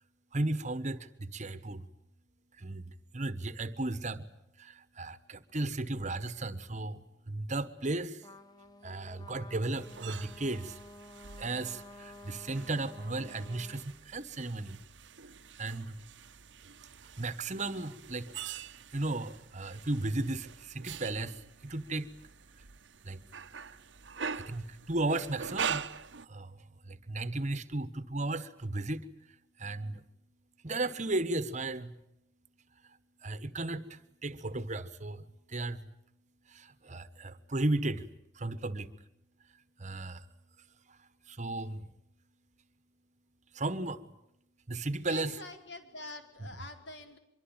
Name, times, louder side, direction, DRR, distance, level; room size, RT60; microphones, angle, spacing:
voice 1, 0.3-1.9 2.6-4.3 4.6-8.3 8.8-10.8 11.4-14.8 15.6-16.0 17.2-18.3 18.9-22.1 23.0-23.2 24.3-25.9 26.3-29.0 29.6-30.0 30.6-31.9 33.2-35.8 36.5-38.1 38.3-38.9 39.8-40.2 40.9-41.0 41.3-41.9 43.5-44.0 44.7-45.3, right 2 dB, 40° right, 14 dB, 1.4 m, -35 dB
Trumpet, 8.2-13.8, left 2 dB, 20° left, 1.5 m, -52 dB
sound 1, 9.8-26.3, right 6 dB, 75° right, 1.0 m, -44 dB
voice 2, 45.0-47.2, left 2 dB, 70° left, 6 dB, 4.4 m, -45 dB
24.5 x 23.5 x 9.0 m, 0.80 s
head